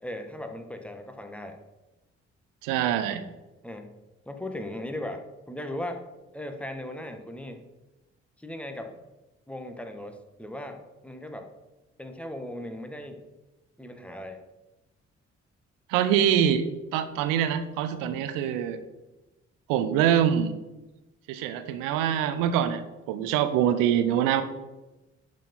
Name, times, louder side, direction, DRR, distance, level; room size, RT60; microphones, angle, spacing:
voice 1, 0.0-1.6 3.6-3.9 4.2-6.0 6.3-7.6 8.4-8.9 9.5-11.5 12.0-13.2 13.8-14.4 18.0-18.3, left 1 dB, 5° left, 5 dB, 1.6 m, -38 dB
voice 2, 2.6-3.2 15.9-16.7 16.9-18.8 19.7-20.5 21.3-22.8 23.1-24.4, right 9 dB, 70° right, 11 dB, 0.9 m, -24 dB
11.0 x 4.8 x 5.5 m, 1.0 s
figure-of-eight pair, 40°, 34 cm